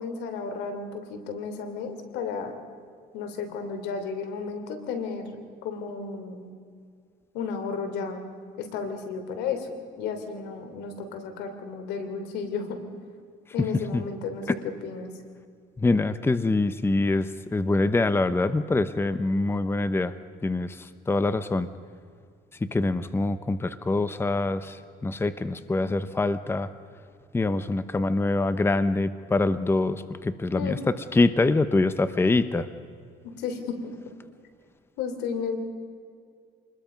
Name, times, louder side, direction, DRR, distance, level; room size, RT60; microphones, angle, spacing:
voice 1, 0.0-2.5 3.1-6.5 7.3-8.2 8.6-9.7 10.0-12.8 13.5-15.1 30.5-30.8 33.2-33.8 35.0-35.6, left 5 dB, 85° left, 7 dB, 3.2 m, -33 dB
voice 2, 15.8-20.1 20.4-21.7 22.6-26.7 27.3-32.7, left 2 dB, 15° left, 12 dB, 0.8 m, -25 dB
27.0 x 21.0 x 5.3 m, 2.2 s
cardioid pair, 110°, 17 cm